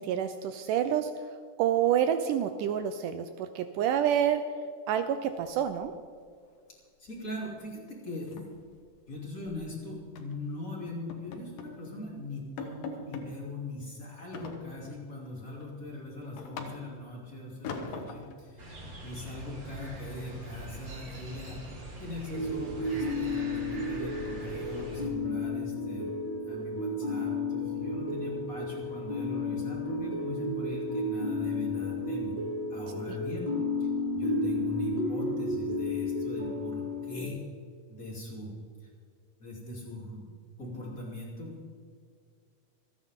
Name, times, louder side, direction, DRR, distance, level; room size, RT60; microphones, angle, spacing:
voice 1, 0.0-4.4 4.9-5.9 33.1-33.2, right 9 dB, 80° right, 9 dB, 2.0 m, -28 dB
sound 1, 5.4-6.2 6.5-6.8 7.1-7.3 7.6-7.7 8.1-9.6 10.2-10.4 10.9-11.8 12.2-12.3 12.6-13.3 14.3-15.1 15.5-17.1 17.6-18.4, left 4 dB, 80° left, 3.0 m, -42 dB
voice 2, 7.0-8.4 9.1-21.7 22.0-32.3 32.7-33.5 33.8-33.9 34.1-37.4 37.9-38.5 39.4-40.3 40.6-41.8, left 1 dB, 25° left, -4 dB, 3.1 m, -41 dB
sound 2, 18.6-25.1, right 1 dB, 35° right, 2.9 m, -43 dB
sound 3, 22.3-37.3, left 2 dB, 15° right, 1.8 m, -32 dB
27.5 x 9.7 x 3.7 m, 2.1 s
omnidirectional pair, 4.0 m